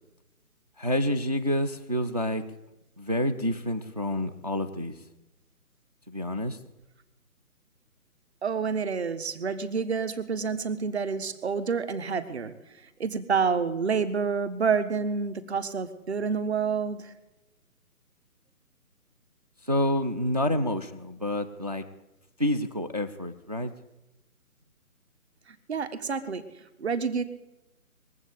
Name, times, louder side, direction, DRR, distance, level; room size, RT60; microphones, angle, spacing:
voice 1, 0.8-2.4 3.0-5.0 6.1-6.6 19.7-21.8 22.4-23.7, left 1 dB, 30° right, 4 dB, 0.6 m, -28 dB
voice 2, 8.4-12.5 13.0-17.1 25.7-26.4 26.8-27.2, right 5 dB, 45° right, 11 dB, 1.5 m, -28 dB
21.5 x 7.9 x 8.4 m, 0.99 s
figure-of-eight pair, 160°, 45 cm